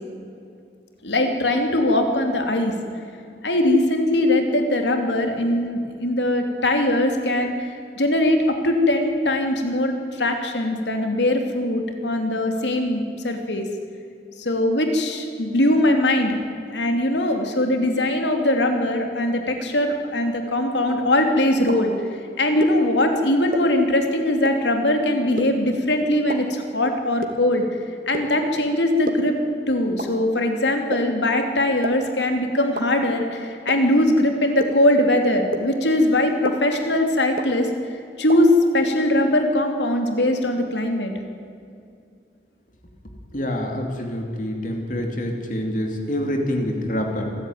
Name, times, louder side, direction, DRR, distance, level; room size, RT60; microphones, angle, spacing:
voice 1, 1.0-2.7 3.4-7.7 8.0-13.7 14.4-16.4 16.7-21.9 22.4-27.7 28.1-29.4 29.7-41.1, left 1 dB, 85° left, 4 dB, 2.9 m, -21 dB
sound 1, 21.7-21.8 22.6-22.7 23.5-23.6 24.4-24.5 25.4-25.5 26.3-26.4 27.2-27.3 28.1-28.2 29.1-29.2 30.0-30.1 30.9-31.0 31.8-31.9 32.7-32.8 33.7-33.8 34.6-34.7 35.5-35.6 36.4-36.5 37.4-37.5 38.3-38.4, right 2 dB, 55° right, 2.4 m, -26 dB
voice 2, 43.3-47.3, left 1 dB, 45° left, 2 dB, 2.8 m, -26 dB
26.0 x 15.0 x 9.4 m, 2.5 s
head